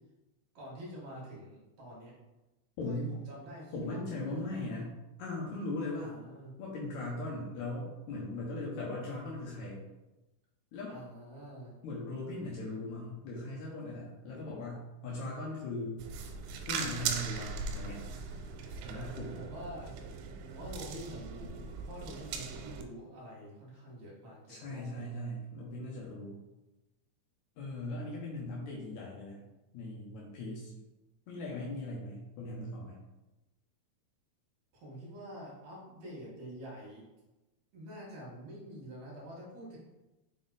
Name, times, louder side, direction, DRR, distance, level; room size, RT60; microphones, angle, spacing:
voice 1, 0.5-2.1 2.9-4.6 6.0-6.5 10.9-11.7 19.4-20.0 20.5-25.1 34.7-37.0 37.7-39.8, equal, 50° right, -5 dB, 2.5 m, -47 dB
voice 2, 2.8-3.1 3.7-4.9 5.2-6.1 6.6-9.8 10.7-10.9 11.8-16.0 16.6-18.0 18.8-19.4 24.5-26.4 27.6-29.4 29.7-30.7 31.3-33.0, left 2 dB, 85° left, -4 dB, 1.6 m, -39 dB
sound 1, 16.0-22.8, right 5 dB, 90° right, 2.7 m, -39 dB
5.9 x 4.1 x 3.9 m, 1.0 s
omnidirectional pair, 4.8 m